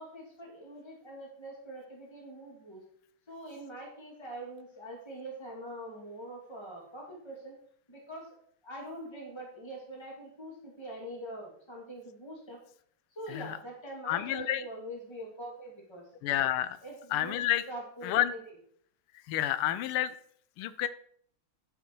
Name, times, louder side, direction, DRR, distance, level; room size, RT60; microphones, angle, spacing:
voice 1, 0.0-2.8 3.3-7.6 7.9-8.3 8.6-12.6 13.1-16.1 16.8-17.4 17.7-18.4, right 1 dB, 10° left, -1 dB, 2.4 m, -44 dB
voice 2, 14.1-14.6 16.2-16.8 17.1-17.6 18.0-18.3 19.3-20.1 20.6-20.9, left 12 dB, 80° left, 14 dB, 1.5 m, -29 dB
11.5 x 5.8 x 4.7 m, 0.62 s
omnidirectional pair, 2.4 m